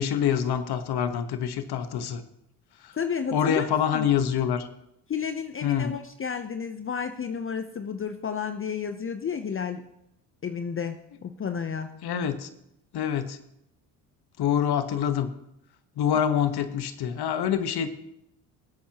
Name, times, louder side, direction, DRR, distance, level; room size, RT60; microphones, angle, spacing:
voice 1, 0.0-2.2 2.8-3.0 3.3-4.7 5.6-5.9 12.0-12.5 12.9-13.4 14.4-15.3 16.0-17.9, left 8 dB, 55° left, 10 dB, 1.3 m, -26 dB
voice 2, 2.9-3.7 3.9-4.1 5.1-9.8 10.4-11.9, left 6 dB, 30° left, 8 dB, 0.7 m, -31 dB
19.5 x 8.4 x 2.9 m, 0.80 s
supercardioid pair, 70°, 45 cm